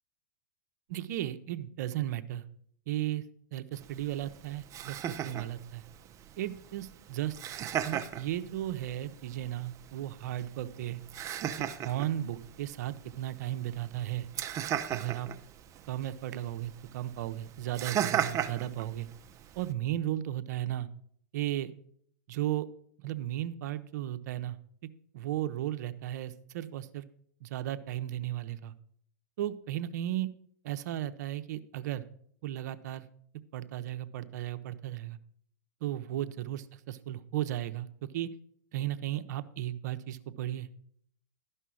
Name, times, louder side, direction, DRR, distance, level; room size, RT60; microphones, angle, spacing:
voice 1, 0.9-2.4 2.9-3.2 3.5-5.8 6.4-7.4 7.8-11.0 11.8-14.3 14.9-15.3 15.8-19.1 19.6-20.9 21.3-21.7 22.3-22.7 23.0-24.6 25.1-27.1 27.4-28.7 29.4-30.3 30.6-32.0 32.4-33.1 33.5-35.2 35.8-37.9 38.1-38.3 38.7-40.8, right 13 dB, 65° right, 11 dB, 0.8 m, -35 dB
Laughter, 3.7-19.7, right 10 dB, 30° right, 0.7 m, -38 dB
12.5 x 5.6 x 6.2 m, 0.64 s
hypercardioid pair, 120°, 10 cm